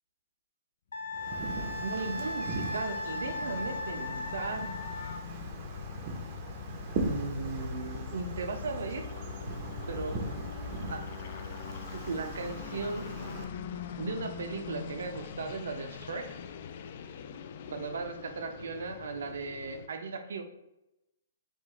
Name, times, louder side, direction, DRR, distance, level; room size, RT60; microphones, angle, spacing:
Wind instrument woodwind instrument, 0.9-5.2, left 2 dB, 90° left, 0.6 m, -37 dB
sound 1, 1.1-19.9, left 6 dB, 40° left, 0.3 m, -42 dB
Wind, 1.1-13.4, right 3 dB, 25° right, 0.6 m, -40 dB
voice 1, 1.8-4.8 7.0-9.0 9.9-10.3 10.9-11.0 11.9-13.1 14.0-16.4 17.7-20.4, right 4 dB, 70° right, 6 dB, 0.7 m, -37 dB
5.0 x 2.5 x 3.8 m, 0.91 s
hypercardioid pair, 170°, 0 cm